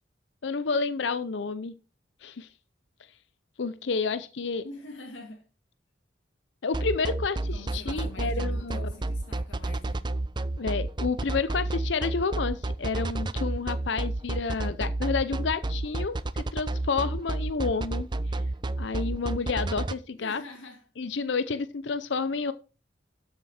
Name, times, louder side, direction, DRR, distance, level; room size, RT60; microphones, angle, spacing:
voice 1, 0.4-1.8 2.2-2.5 3.6-4.6 6.6-8.9 10.6-18.4 18.8-20.4 21.0-22.5, left 4 dB, 70° left, 0.6 m, -30 dB
voice 2, 4.6-5.5 7.5-10.0 20.2-20.9, left 2 dB, 90° left, 2.2 m, -45 dB
sound 1, 6.7-19.9, right 2 dB, 25° right, 0.5 m, -30 dB
13.0 x 6.8 x 4.2 m
head